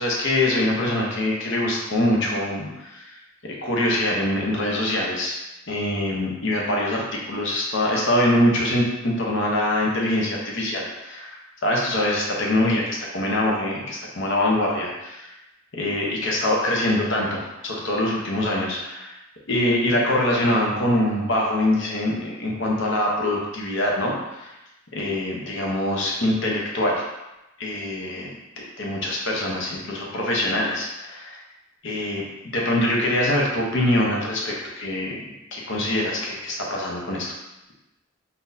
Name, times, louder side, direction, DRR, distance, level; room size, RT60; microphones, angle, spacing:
voice 1, 0.0-3.2 3.4-5.3 5.7-11.4 11.6-15.3 15.7-19.1 19.5-24.5 24.9-27.0 27.6-28.3 28.6-31.4 31.8-35.2 35.5-37.3, left 1 dB, 60° left, -2 dB, 0.7 m, -24 dB
3.9 x 2.7 x 2.6 m, 0.97 s
head